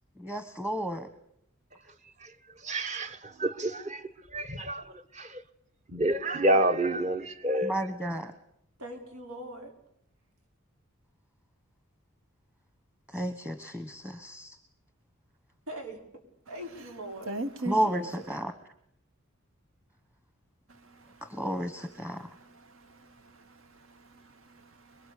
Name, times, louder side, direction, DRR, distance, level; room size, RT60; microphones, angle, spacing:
voice 1, 0.2-1.1 7.6-8.3 13.1-14.6 17.7-18.5 21.3-22.3, right 1 dB, 10° right, 1.3 m, -32 dB
voice 2, 2.6-4.0 4.3-5.4 5.9-7.7, right 1 dB, 35° right, 1.4 m, -28 dB
voice 3, 6.5-7.0 8.8-9.7 15.7-17.4, right 1 dB, 90° right, 5.4 m, -42 dB
voice 4, 17.3-18.1 20.8-25.1, right 2 dB, 65° right, 1.6 m, -42 dB
25.5 x 22.5 x 8.5 m
head